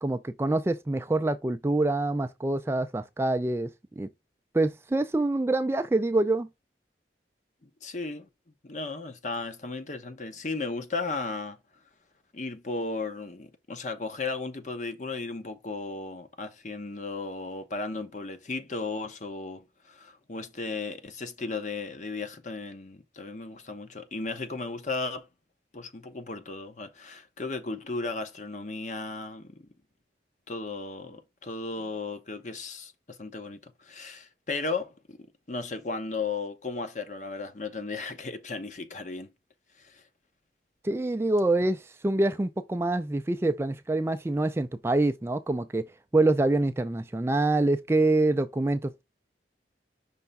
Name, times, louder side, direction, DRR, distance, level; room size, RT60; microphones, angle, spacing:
voice 1, 0.0-3.7 4.0-4.1 4.5-6.5 40.8-45.8 46.1-49.0, right 2 dB, 15° right, 0.3 m, -26 dB
voice 2, 7.6-8.3 8.6-11.6 12.3-25.3 25.7-29.7 30.5-39.3 39.7-40.0, left 3 dB, 45° left, 1.0 m, -35 dB
5.6 x 3.3 x 5.3 m
head